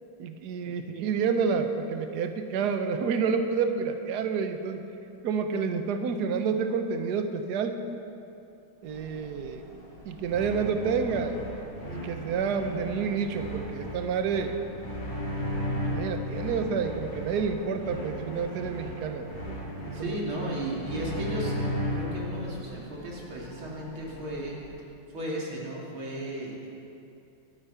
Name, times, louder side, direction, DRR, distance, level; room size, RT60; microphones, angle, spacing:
voice 1, 0.2-4.8 5.2-7.8 8.8-9.6 10.0-11.4 11.9-14.6 15.8-19.3 19.9-20.2, right 6 dB, 60° right, 7 dB, 1.3 m, -29 dB
sound 1, 8.8-24.7, equal, 65° left, 5.4 m, -49 dB
sound 2, 10.3-22.3, equal, 80° left, 4.0 m, -35 dB
voice 2, 19.9-24.6 25.1-26.7, right 1 dB, 90° right, -4 dB, 3.5 m, -35 dB
22.5 x 8.5 x 5.7 m, 2.7 s
omnidirectional pair, 2.2 m